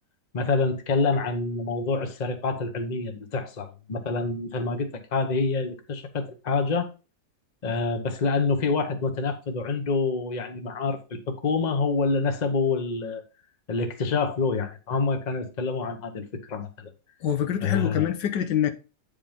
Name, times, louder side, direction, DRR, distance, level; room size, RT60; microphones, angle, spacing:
voice 1, 0.3-6.9 7.6-13.2 13.7-16.9 17.6-18.1, left 4 dB, 30° left, 1.0 m, -27 dB
voice 2, 17.2-18.7, left 9 dB, 80° left, 1.5 m, -25 dB
8.8 x 5.3 x 3.5 m
omnidirectional pair, 1.9 m